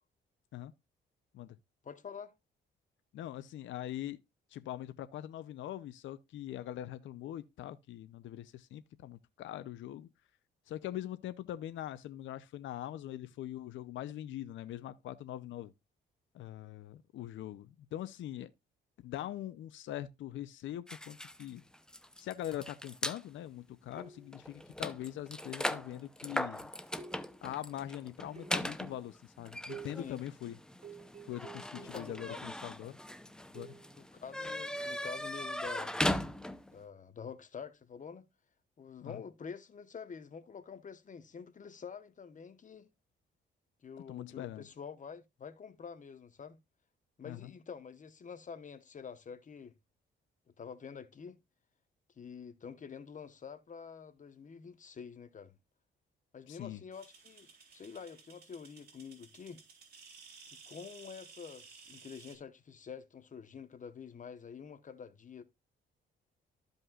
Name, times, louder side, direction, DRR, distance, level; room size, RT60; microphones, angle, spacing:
voice 1, 1.8-2.3 30.0-30.2 31.8-32.4 34.0-36.0 36.7-38.3 38.8-42.9 43.8-46.6 47.2-49.8 50.6-51.4 52.1-55.5 56.3-59.6 60.5-65.4, left 6 dB, 40° left, 1.1 m, -47 dB
voice 2, 3.1-4.2 4.5-10.1 10.7-15.7 16.3-18.5 19.0-21.6 22.2-26.7 27.4-30.5 31.2-33.0 33.5-33.7 39.0-39.2 44.1-44.7 47.2-47.5 56.5-56.8, left 12 dB, 75° left, 0.7 m, -42 dB
sound 1, 20.9-23.2 23.9-24.1 24.3-36.8, left 1 dB, 5° left, 0.6 m, -39 dB
sound 2, 24.0-24.5 25.8-26.1 27.0-27.6 28.3-28.8 29.7-30.2 30.8-32.5 33.5-34.0 35.4-35.6, right 6 dB, 35° right, 0.9 m, -51 dB
sound 3, 56.9-62.4, right 5 dB, 55° right, 3.5 m, -56 dB
14.0 x 5.3 x 2.4 m
cardioid pair, 90°, 20 cm